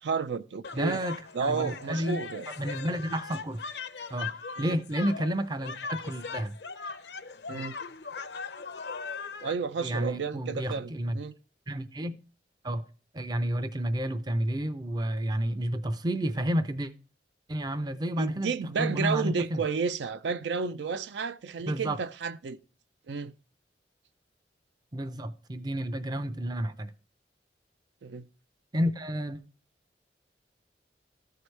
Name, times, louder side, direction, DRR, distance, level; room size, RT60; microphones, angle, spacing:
voice 1, 0.0-1.0 1.3-2.5 4.6-4.8 7.5-7.8 9.4-11.3 18.2-22.6 23.1-23.3 28.0-28.3, right 5 dB, 80° right, 0.4 m, -32 dB
sound 1, 0.6-9.5, left 5 dB, 65° left, 0.6 m, -39 dB
voice 2, 0.7-3.6 4.1-6.5 7.5-7.6 9.8-11.2 11.7-12.2 12.6-12.9 13.1-16.9 17.5-19.6 21.7-22.0 24.9-26.9 28.7-29.4, equal, 25° right, 0.5 m, -31 dB
13.5 x 4.7 x 3.2 m
head